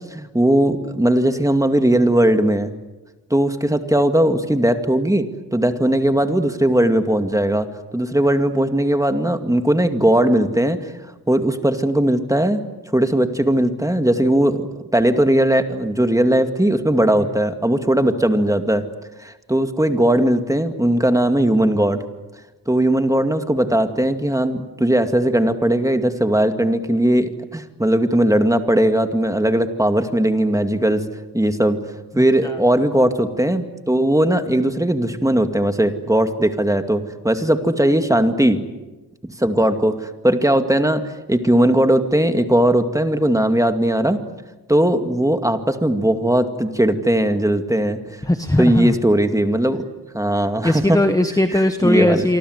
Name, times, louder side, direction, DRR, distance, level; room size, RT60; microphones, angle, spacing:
voice 1, 0.1-2.7 3.3-7.7 7.9-10.8 11.3-12.6 12.9-14.7 14.9-18.8 19.2-22.0 22.7-31.0 31.3-31.8 32.2-38.6 39.2-40.0 40.2-41.0 41.3-44.2 44.7-48.0 48.6-49.8 50.1-51.0 51.8-52.3, right 1 dB, 10° right, 7 dB, 2.2 m, -18 dB
voice 2, 48.2-48.9 50.6-52.4, left 1 dB, 10° left, 8 dB, 1.2 m, -18 dB
27.5 x 24.5 x 8.1 m, 1.2 s
wide cardioid pair, 95°, 39 cm